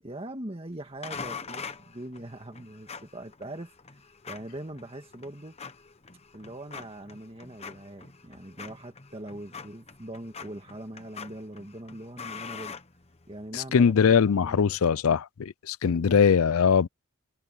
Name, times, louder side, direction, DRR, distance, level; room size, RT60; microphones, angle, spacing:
voice 1, 0.0-5.6 6.3-12.8 13.3-14.7 15.8-16.3, right 1 dB, 25° right, 1.9 m, -42 dB
sound 1, 1.0-13.5, left 5 dB, 30° left, 1.1 m, -44 dB
voice 2, 13.5-16.9, left 6 dB, 70° left, 0.4 m, -21 dB
head